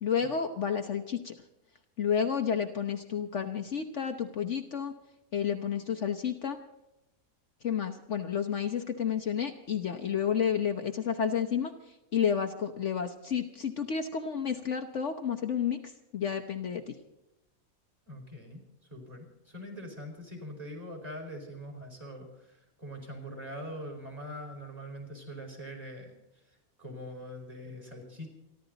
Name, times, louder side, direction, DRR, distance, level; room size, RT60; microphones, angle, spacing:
voice 1, 0.0-1.3 2.0-4.9 5.3-6.6 7.6-17.0, left 7 dB, 55° left, 5 dB, 1.2 m, -31 dB
voice 2, 18.1-18.6 18.9-26.1 26.8-28.3, equal, 25° right, 1 dB, 4.9 m, -43 dB
28.0 x 12.0 x 4.0 m, 0.92 s
omnidirectional pair, 1.5 m